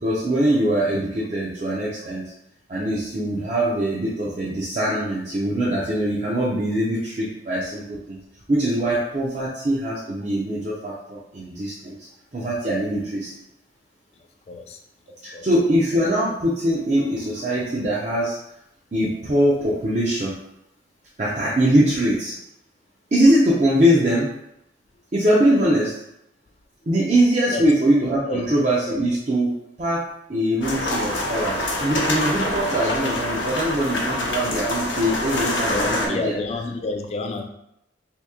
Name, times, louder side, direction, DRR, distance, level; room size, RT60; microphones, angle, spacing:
voice 1, 0.0-2.2 2.7-8.2 8.5-12.0 12.3-13.3 15.2-18.4 18.9-20.3 21.2-22.3 23.1-24.3 25.1-25.9 26.9-30.0 30.3-36.4, right 1 dB, 40° right, -7 dB, 0.5 m, -22 dB
voice 2, 14.5-14.8 15.3-15.5 27.5-27.7 28.3-28.4 35.7-37.5, left 3 dB, 35° left, 5 dB, 0.3 m, -29 dB
sound 1, 30.6-36.1, left 1 dB, 85° left, 0.7 m, -25 dB
2.9 x 2.7 x 3.5 m, 0.80 s
head